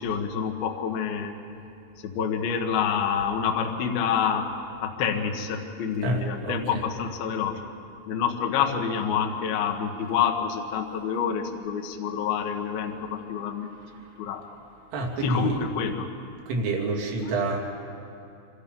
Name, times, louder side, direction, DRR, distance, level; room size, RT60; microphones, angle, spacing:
voice 1, 0.0-1.4 2.0-4.5 4.8-7.6 8.1-13.7 14.2-14.4 15.2-16.1, left 7 dB, 65° left, 3 dB, 2.8 m, -27 dB
voice 2, 6.0-6.8 14.9-15.6 16.5-17.6, right 2 dB, 75° right, -1 dB, 5.3 m, -28 dB
26.0 x 25.5 x 5.5 m, 2.6 s
omnidirectional pair, 5.8 m